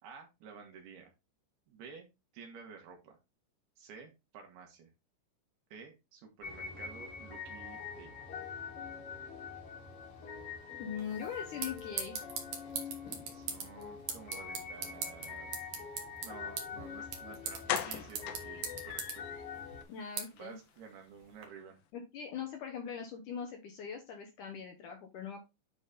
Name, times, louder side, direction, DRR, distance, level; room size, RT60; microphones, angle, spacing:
voice 1, 0.0-1.1 1.7-3.2 3.8-4.9 5.7-8.1 13.3-15.7 16.2-19.3 20.3-21.8, right 6 dB, 70° right, 2 dB, 3.7 m, -52 dB
sound 1, 6.4-19.8, left 5 dB, 50° left, 4.0 m, -45 dB
voice 2, 10.8-12.2 19.9-20.6 21.9-25.4, left 7 dB, 65° left, 4 dB, 2.1 m, -41 dB
sound 2, 11.0-21.5, right 6 dB, 55° right, 2.3 m, -43 dB
sound 3, 17.0-17.1 17.7-19.4 19.8-19.9 20.3-20.4 20.7-20.8, left 11 dB, 85° left, 2.9 m, -38 dB
9.6 x 4.2 x 3.9 m, 0.24 s
omnidirectional pair, 4.8 m